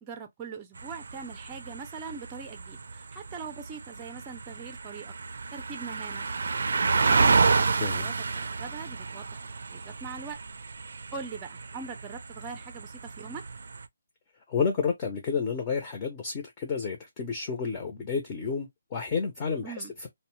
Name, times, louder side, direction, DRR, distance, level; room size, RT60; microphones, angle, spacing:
voice 1, 0.0-5.1 5.5-6.2 6.7-9.4 9.7-10.4 11.1-13.4 19.6-19.9, right 5 dB, 15° right, 0.5 m, -42 dB
sound 1, 0.8-13.9, right 4 dB, 70° right, 0.4 m, -30 dB
voice 2, 14.5-20.1, left 5 dB, 25° left, 0.6 m, -30 dB
2.6 x 2.1 x 3.0 m
hypercardioid pair, 160°, 0 cm